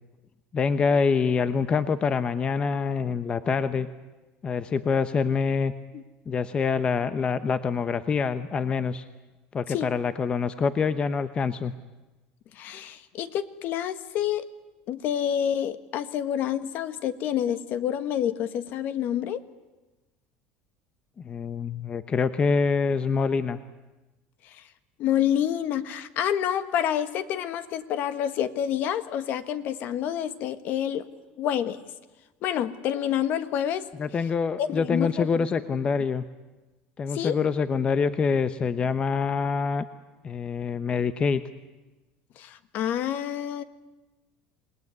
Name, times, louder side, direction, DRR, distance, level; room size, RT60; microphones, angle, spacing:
voice 1, 0.5-3.9 4.4-5.7 6.3-9.0 9.5-11.7 21.2-23.6 34.0-36.2 37.0-39.8 40.2-41.4, left 5 dB, 25° left, 12 dB, 0.9 m, -25 dB
voice 2, 12.6-14.4 14.9-19.4 25.0-31.0 31.4-31.8 32.4-33.8 34.6-35.5 37.1-37.3 42.4-43.6, left 10 dB, 55° left, 12 dB, 1.5 m, -28 dB
28.0 x 19.0 x 9.6 m, 1.1 s
supercardioid pair, 125°, 4 cm